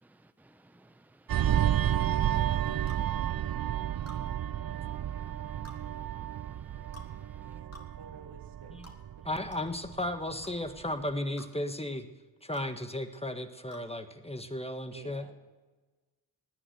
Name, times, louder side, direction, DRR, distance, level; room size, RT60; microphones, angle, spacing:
voice 1, 0.0-2.8 3.9-4.1 4.7-7.6, right 1 dB, 5° right, 0.8 m, -60 dB
sound 1, 1.3-10.3 10.7-10.9, right 11 dB, 60° right, 0.6 m, -31 dB
sound 2, 2.9-3.1 4.1-4.2 5.6-5.8 6.9-7.1 7.7-7.9 8.8-9.0 9.5-9.7 10.4-10.6 11.4-11.5 12.5-12.7 13.7-13.9, left 1 dB, 40° left, 3.0 m, -50 dB
voice 2, 7.4-8.8 9.2-9.3 14.9-15.3, right 4 dB, 80° right, 2.1 m, -52 dB
voice 3, 9.2-12.1 12.4-15.2, left 1 dB, 15° left, 1.6 m, -35 dB
18.5 x 9.9 x 6.9 m
cardioid pair, 40°, 41 cm